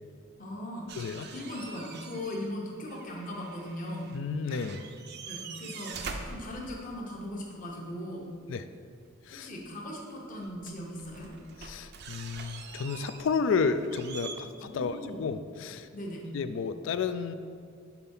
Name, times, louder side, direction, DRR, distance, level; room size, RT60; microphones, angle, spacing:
voice 1, 0.4-0.9 1.3-4.1 5.3-8.2 9.3-11.3 14.6-15.2 15.9-16.3, left 1 dB, 40° left, -1 dB, 1.0 m, -39 dB
sound 1, 0.9-2.5 2.8-4.2 4.5-7.2 9.5-9.6 10.3-14.4, right 5 dB, 55° right, 0.5 m, -44 dB
voice 2, 1.0-1.3 4.1-4.8 8.5-8.6 9.3-9.5 11.6-15.9 16.3-17.3, left 5 dB, 65° left, 11 dB, 0.3 m, -31 dB
5.9 x 4.4 x 5.4 m, 2.2 s
head